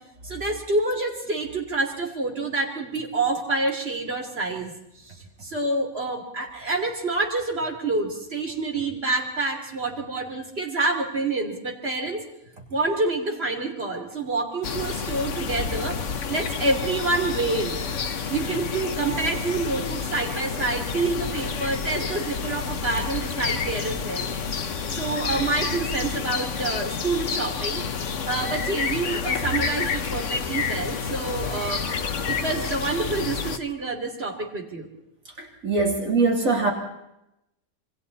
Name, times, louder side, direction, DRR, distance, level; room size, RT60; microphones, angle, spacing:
voice 1, 0.2-4.7 5.1-5.2 5.4-12.2 12.7-16.0 16.3-17.8 18.3-24.6 25.0-27.8 28.2-31.8 32.3-34.9, right 3 dB, 45° right, 2 dB, 3.5 m, -27 dB
sound 1, 14.6-33.6, left 6 dB, 60° left, 1.4 m, -29 dB
voice 2, 35.4-36.7, right 3 dB, 65° right, 1 dB, 3.6 m, -22 dB
27.5 x 23.0 x 4.2 m, 0.85 s
omnidirectional pair, 1.5 m